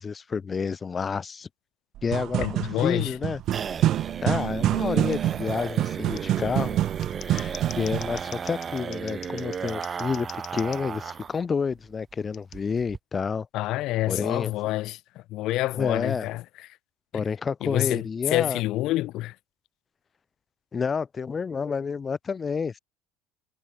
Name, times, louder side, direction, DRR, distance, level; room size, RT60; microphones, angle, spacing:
voice 1, 0.0-1.5 2.0-3.4 4.2-6.8 7.2-13.5 14.0-14.5 15.7-16.3 17.1-18.6 20.7-22.8, left 5 dB, 25° left, 1.7 m, -29 dB
sound 1, 2.0-8.2, right 13 dB, 55° right, 1.2 m, -27 dB
sound 2, 2.3-11.4 11.7-11.8 12.1-12.2 12.5-13.0, right 7 dB, 30° right, 1.3 m, -35 dB
voice 2, 2.4-3.1 13.5-15.0 15.3-16.4 17.6-19.3, left 17 dB, 60° left, 0.7 m, -27 dB
Scissors, 5.1-5.2 6.1-6.2 6.9-10.8 12.3-12.6, left 10 dB, 45° left, 2.8 m, -44 dB
supercardioid pair, 110°, 0 cm